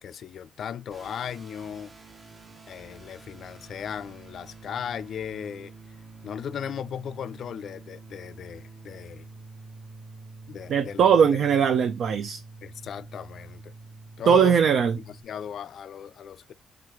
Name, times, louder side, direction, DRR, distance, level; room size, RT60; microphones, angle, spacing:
voice 1, 0.0-1.9 2.7-5.7 6.2-9.3 10.5-11.1 11.4-11.5 12.6-13.7 14.2-14.6 15.0-16.5, left 8 dB, 60° left, 0.3 m, -36 dB
sound 1, 0.9-15.2, right 3 dB, 30° right, 0.8 m, -47 dB
voice 2, 10.7-12.4 14.3-15.0, right 7 dB, 65° right, 0.4 m, -20 dB
4.6 x 3.3 x 3.5 m
cardioid pair, 90°, 0 cm